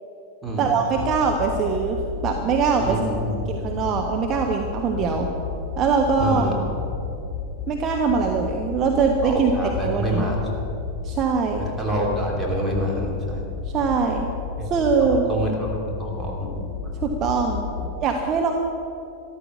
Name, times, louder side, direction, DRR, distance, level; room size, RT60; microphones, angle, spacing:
voice 1, 0.6-3.0 3.5-5.3 5.8-6.5 7.7-9.5 9.8-10.2 11.0-11.6 13.7-14.3 14.7-15.3 17.0-17.7 18.0-18.5, right 5 dB, 30° right, 2 dB, 1.1 m, -22 dB
sound 1, 0.9-17.9, left 6 dB, 30° left, 3.2 m, -32 dB
voice 2, 2.8-3.5 4.4-4.5 4.9-5.1 6.2-6.6 9.2-10.7 11.6-13.4 14.6-14.7 15.0-16.9 17.8-17.9, right 1 dB, 5° right, -3 dB, 3.2 m, -28 dB
13.5 x 12.0 x 6.2 m, 2.8 s
figure-of-eight pair, 90°, 0 cm